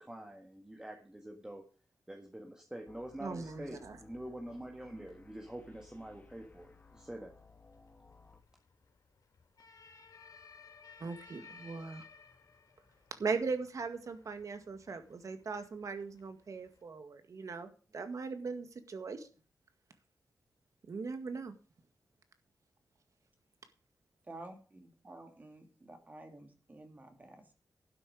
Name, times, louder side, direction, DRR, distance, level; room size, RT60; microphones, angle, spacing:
voice 1, 0.0-1.6 2.1-7.3, right 1 dB, 10° right, 2 dB, 1.7 m, -46 dB
sound 1, 2.9-8.4, left 4 dB, 25° left, 2.3 m, -60 dB
voice 2, 3.2-4.0 11.0-12.0 13.1-19.3 20.9-21.5, right 4 dB, 60° right, 8 dB, 1.9 m, -39 dB
sound 2, 5.6-16.8, left 5 dB, 80° left, 4.0 m, -59 dB
voice 3, 24.2-27.5, right 2 dB, 25° right, 4 dB, 2.7 m, -51 dB
12.0 x 10.0 x 5.0 m, 0.37 s
wide cardioid pair, 115°, 6 cm